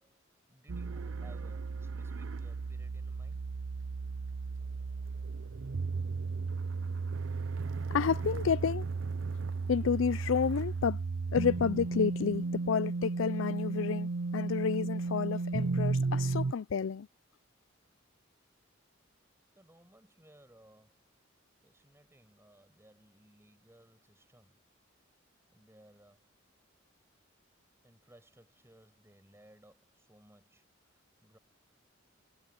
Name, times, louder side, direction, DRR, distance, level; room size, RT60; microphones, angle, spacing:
voice 1, 0.0-3.4 19.5-21.1 21.6-24.6 25.5-26.3 27.8-31.4, right 1 dB, 15° right, 6.3 m, -61 dB
sound 1, 0.7-16.5, right 4 dB, 70° right, 0.6 m, -34 dB
voice 2, 7.9-8.9 9.7-11.0 11.3-17.1, left 6 dB, 70° left, 0.4 m, -30 dB
head